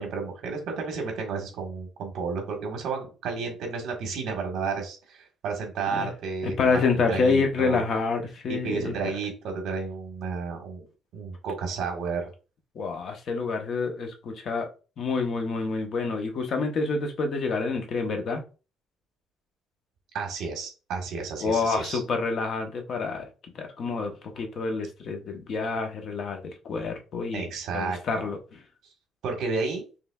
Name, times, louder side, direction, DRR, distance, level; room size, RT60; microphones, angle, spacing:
voice 1, 0.0-7.8 8.5-10.8 11.1-12.3 20.1-22.0 27.3-28.3 29.2-29.8, right 4 dB, 60° right, 3 dB, 1.4 m, -32 dB
voice 2, 6.4-8.9 12.7-14.7 15.0-18.4 21.4-27.5 27.7-28.4, left 4 dB, 45° left, 5 dB, 0.8 m, -28 dB
5.4 x 3.1 x 2.3 m, 0.34 s
cardioid pair, 160°, 0 cm